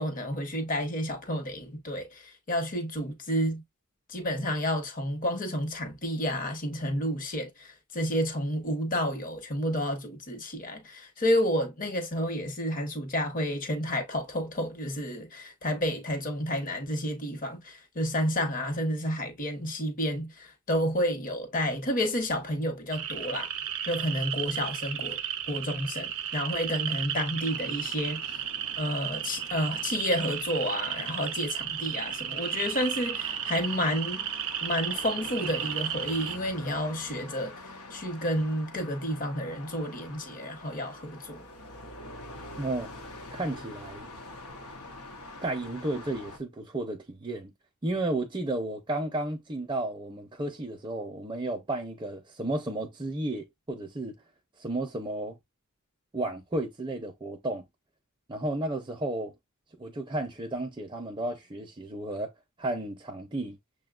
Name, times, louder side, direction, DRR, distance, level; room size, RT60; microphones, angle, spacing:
voice 1, 0.0-3.6 4.1-23.5 23.9-25.2 25.5-28.4 28.8-34.3 34.6-41.4, equal, 40° left, 0.9 m, -30 dB
sound 1, 22.9-36.4, right 10 dB, 65° right, 0.6 m, -34 dB
sound 2, 27.4-46.4, left 2 dB, 90° left, 0.9 m, -46 dB
voice 2, 42.6-42.9 43.3-44.1 45.4-47.5 47.8-54.2 54.6-55.4 56.1-57.7 58.3-59.3 59.8-62.3 62.6-63.6, right 2 dB, 20° right, 0.5 m, -33 dB
6.5 x 2.2 x 2.4 m
head